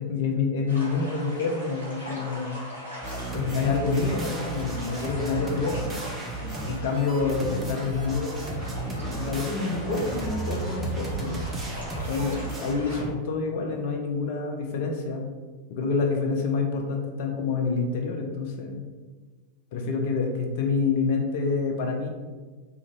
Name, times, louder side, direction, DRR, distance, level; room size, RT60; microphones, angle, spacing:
voice 1, 0.0-2.6 3.3-5.9 6.4-11.6 12.1-15.3 15.7-18.9 19.7-22.1, left 4 dB, 50° left, 2 dB, 0.4 m, -28 dB
sound 1, 0.7-13.0, equal, 85° left, 1.1 m, -40 dB
sound 2, 3.0-13.1, right 2 dB, 15° right, 0.5 m, -34 dB
2.4 x 2.4 x 3.0 m, 1.4 s
figure-of-eight pair, 90°, 0 cm